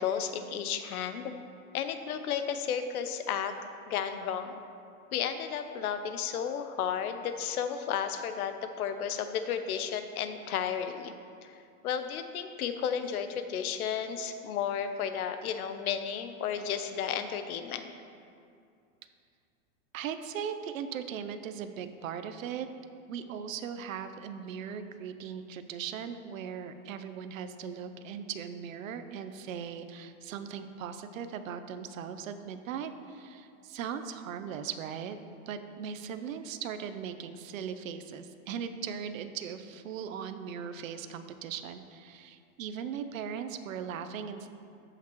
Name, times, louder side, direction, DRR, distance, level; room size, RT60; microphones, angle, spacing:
voice 1, 0.0-1.3 1.7-3.5 3.9-4.6 5.1-11.1 11.4-11.6 11.8-17.9, left 8 dB, 85° left, 9 dB, 0.8 m, -33 dB
voice 2, 19.9-22.7 23.1-35.2 35.5-44.5, right 7 dB, 65° right, 9 dB, 0.7 m, -39 dB
14.0 x 5.9 x 3.0 m, 2.4 s
supercardioid pair, 175°, 43 cm